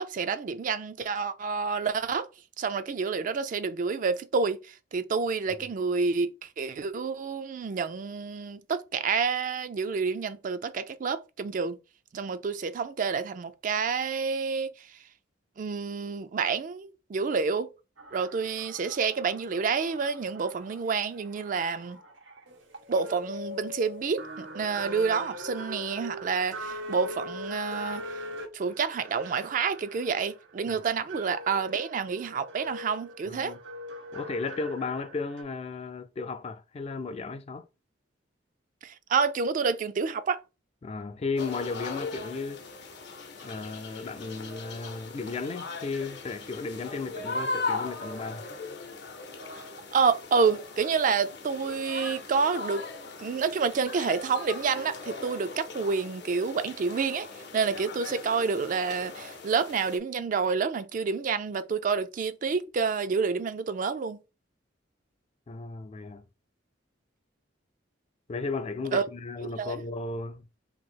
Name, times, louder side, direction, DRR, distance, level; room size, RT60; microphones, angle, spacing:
voice 1, 0.0-2.3 2.6-11.8 12.1-14.9 15.6-17.7 18.1-22.0 22.9-28.2 28.5-33.5 38.8-40.4 49.5-49.6 49.9-52.8 53.2-57.3 57.5-64.2 68.9-69.0 69.6-69.8, right 5 dB, 45° right, 0.3 m, -28 dB
sound 1, 18.0-35.4, equal, 85° right, 0.7 m, -42 dB
voice 2, 33.3-33.6 34.1-37.7 40.8-42.6 43.4-48.5 65.5-66.2 68.3-70.6, left 4 dB, 35° left, 0.3 m, -35 dB
sound 2, 41.4-60.0, left 3 dB, 60° left, 0.7 m, -39 dB
2.9 x 2.7 x 4.3 m
head